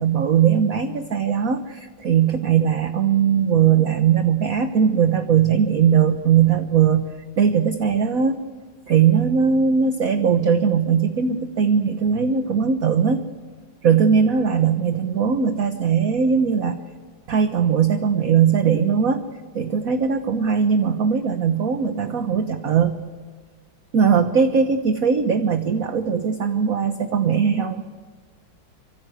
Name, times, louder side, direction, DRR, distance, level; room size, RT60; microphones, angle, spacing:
voice 1, 0.0-7.1 7.4-8.4 8.9-13.2 13.8-16.8 17.3-19.3 19.5-23.0 23.9-27.8, right 7 dB, 50° right, 8 dB, 1.4 m, -19 dB
26.5 x 24.5 x 8.3 m, 1.5 s
omnidirectional pair, 2.2 m